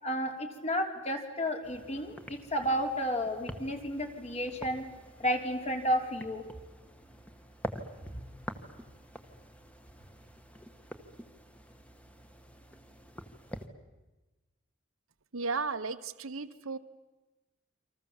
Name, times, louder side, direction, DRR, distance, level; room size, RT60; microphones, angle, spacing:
voice 1, 0.0-4.8 5.2-6.4 8.1-8.2, equal, 35° left, 3 dB, 3.5 m, -32 dB
sound 1, 1.6-13.7, equal, 5° left, 1.7 m, -47 dB
voice 2, 15.3-16.8, right 4 dB, 75° right, 12 dB, 1.2 m, -34 dB
29.0 x 26.0 x 7.4 m, 1.1 s
head